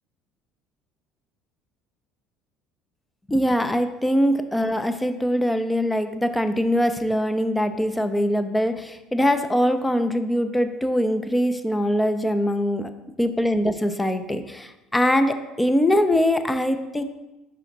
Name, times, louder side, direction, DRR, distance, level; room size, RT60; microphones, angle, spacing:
voice 1, 3.3-12.9 13.2-17.0, equal, 10° left, 9 dB, 0.6 m, -22 dB
5.5 x 4.9 x 3.9 m, 1.0 s
supercardioid pair, 80°, 0 cm